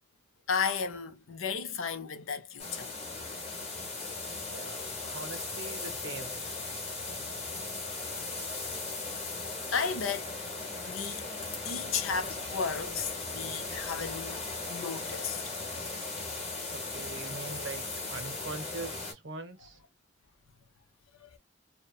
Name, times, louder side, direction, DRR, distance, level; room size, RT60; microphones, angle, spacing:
voice 1, 0.5-2.9 7.0-7.7 9.7-10.4 10.9-11.2 11.6-15.4 21.2-21.4, left 6 dB, 90° left, 0.6 m, -34 dB
sound 1, 2.6-19.1, left 3 dB, 30° left, 1.0 m, -38 dB
voice 2, 4.3-4.8 5.0-6.3 16.7-19.8, right 3 dB, 65° right, 0.8 m, -42 dB
2.7 x 2.2 x 2.4 m
head